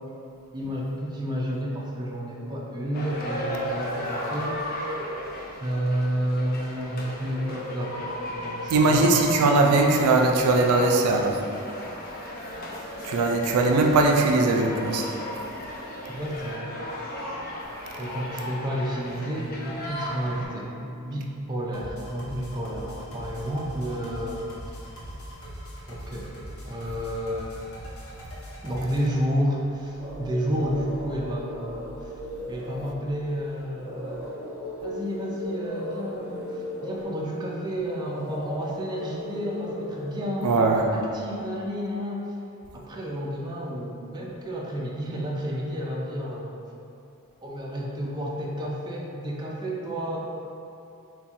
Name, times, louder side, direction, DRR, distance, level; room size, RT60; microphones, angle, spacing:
voice 1, 0.5-5.0 5.6-9.1 16.1-16.7 18.0-24.8 25.9-26.3 26.6-27.6 28.6-32.1 32.5-34.3 34.8-42.4 42.7-46.6 47.4-50.2, equal, 20° right, -3 dB, 0.4 m, -31 dB
sound 1, 2.9-20.5, left 1 dB, 40° left, 0.5 m, -35 dB
voice 2, 8.7-11.4 13.0-15.1 40.4-40.9, right 3 dB, 85° right, 2 dB, 0.4 m, -20 dB
sound 2, 21.7-29.1, equal, 70° left, 0.8 m, -41 dB
sound 3, 30.0-40.2, left 1 dB, 10° left, 0.8 m, -37 dB
3.5 x 2.3 x 4.2 m, 2.7 s
head